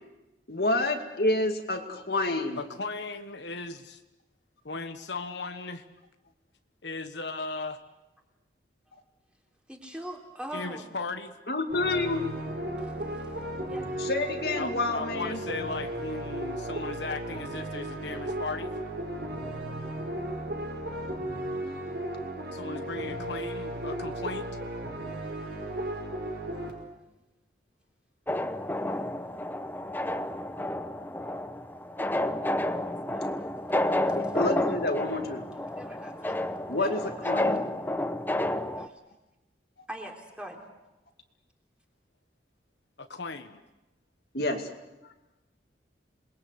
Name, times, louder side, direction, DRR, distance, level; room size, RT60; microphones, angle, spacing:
voice 1, 0.5-2.6 11.5-12.2 14.0-15.4 34.1-35.4 36.7-37.6 44.3-44.7, left 2 dB, 55° left, 5 dB, 2.4 m, -28 dB
voice 2, 2.6-4.0 4.6-5.8 6.8-7.8 10.5-11.3 14.6-18.7 22.5-24.5 43.0-43.6 45.0-45.1, left 3 dB, 75° left, 8 dB, 1.3 m, -37 dB
voice 3, 9.7-11.0 12.8-13.3 13.6-13.9 26.5-26.8 32.9-34.4 35.7-36.4 36.8-37.1 39.9-40.6, equal, 5° right, 1 dB, 3.5 m, -43 dB
sound 1, 11.7-26.7, right 1 dB, 60° right, 5.2 m, -35 dB
sound 2, 28.3-38.9, left 1 dB, 10° left, 0.8 m, -30 dB
27.5 x 21.5 x 8.1 m, 1.0 s
head